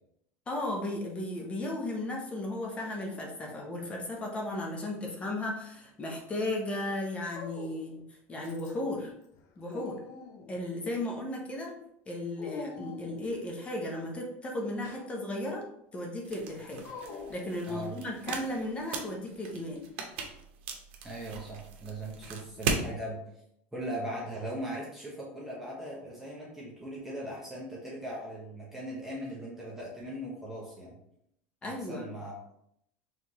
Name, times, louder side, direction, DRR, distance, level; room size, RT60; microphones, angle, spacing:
voice 1, 0.5-8.0 8.3-9.1 9.6-10.0 10.5-11.8 12.1-15.6 15.9-16.9 17.3-19.8 31.6-32.1, left 1 dB, 20° left, 0 dB, 0.8 m, -35 dB
Dog, 3.1-3.9 5.0-5.9 7.3-8.0 8.4-8.9 9.3-10.7 12.4-13.4 14.6-15.1 16.8-18.1, left 4 dB, 50° left, 0.6 m, -46 dB
sound 1, 16.2-22.9, right 4 dB, 80° right, 0.9 m, -38 dB
voice 2, 17.7-18.0 21.0-23.2 23.7-31.0 31.6-32.3, right 1 dB, 5° right, -5 dB, 1.1 m, -39 dB
4.6 x 3.4 x 3.0 m, 0.75 s
supercardioid pair, 140°, 6 cm